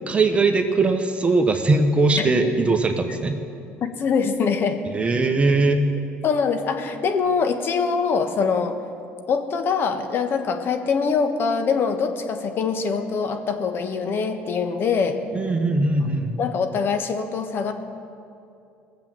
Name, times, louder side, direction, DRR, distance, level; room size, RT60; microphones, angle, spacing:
voice 1, 0.1-3.4 4.8-5.9 15.3-16.4, right 3 dB, 25° right, 5 dB, 1.2 m, -20 dB
voice 2, 3.8-4.8 6.2-8.8 9.3-15.2 16.4-17.7, left 5 dB, 50° left, 7 dB, 1.3 m, -23 dB
19.0 x 7.6 x 7.7 m, 2.6 s
supercardioid pair, 85°, 5 cm